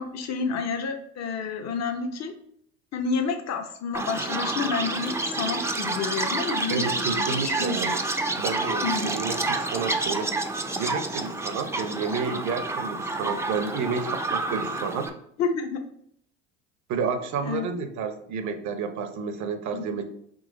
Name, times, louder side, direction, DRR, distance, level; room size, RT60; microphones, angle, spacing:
voice 1, 0.0-2.3 2.9-7.8 8.8-9.2 15.4-15.9 17.3-17.7 19.7-19.8, left 5 dB, 45° left, 6 dB, 0.8 m, -30 dB
Chirp tweet, 3.9-15.1, right 2 dB, 10° right, 0.5 m, -29 dB
voice 2, 6.7-8.0 8.4-10.4 10.8-15.1 16.9-20.1, right 5 dB, 50° right, 8 dB, 0.7 m, -30 dB
3.9 x 3.0 x 3.9 m, 0.70 s
hypercardioid pair, 70°, 36 cm